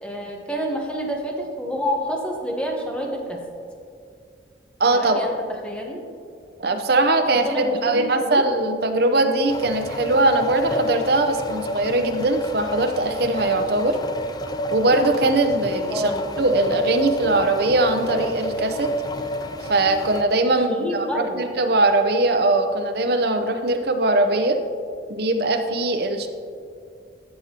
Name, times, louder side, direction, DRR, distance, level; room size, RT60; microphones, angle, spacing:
voice 1, 0.0-3.4 4.9-5.4 5.6-6.0 7.4-8.5 15.9-16.3 20.5-21.4, equal, 5° left, 0 dB, 1.1 m, -28 dB
voice 2, 4.8-5.2 6.6-14.0 14.7-16.1 16.4-18.9 19.7-21.1 21.4-24.6 25.1-26.3, right 2 dB, 60° right, 6 dB, 0.7 m, -21 dB
sound 1, 9.5-20.2, equal, 20° left, 0.4 m, -30 dB
13.0 x 7.6 x 2.9 m, 2.3 s
head